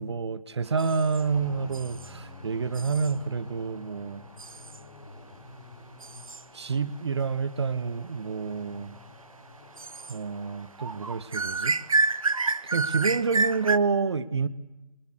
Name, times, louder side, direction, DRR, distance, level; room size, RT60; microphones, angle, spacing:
voice 1, 0.0-4.2 6.5-8.9 10.1-11.8 12.7-14.5, right 5 dB, 50° right, 1.3 m, -28 dB
sound 1, 0.8-1.3 1.7-2.1 2.7-3.1 4.4-4.8 6.0-6.4 9.8-10.2 10.5-10.6 10.8-13.8, right 3 dB, 70° right, 1.0 m, -29 dB
sound 2, 1.2-11.1, left 3 dB, 50° left, 5.1 m, -49 dB
24.5 x 21.0 x 8.0 m
figure-of-eight pair, 145°, 18 cm